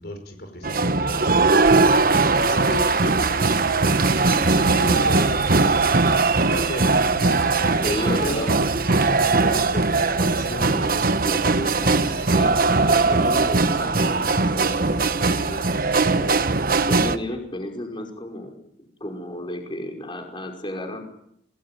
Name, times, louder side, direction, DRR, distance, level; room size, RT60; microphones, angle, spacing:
voice 1, 0.0-8.7 9.0-10.9 11.9-13.2, left 1 dB, 65° left, 7 dB, 4.9 m, -35 dB
sound 1, 0.6-17.2, right 3 dB, 55° right, 1.3 m, -20 dB
voice 2, 7.8-8.5 10.6-16.4 16.9-18.5 18.8-21.0, left 1 dB, 30° left, 3 dB, 5.4 m, -33 dB
27.0 x 19.5 x 9.2 m, 0.74 s
head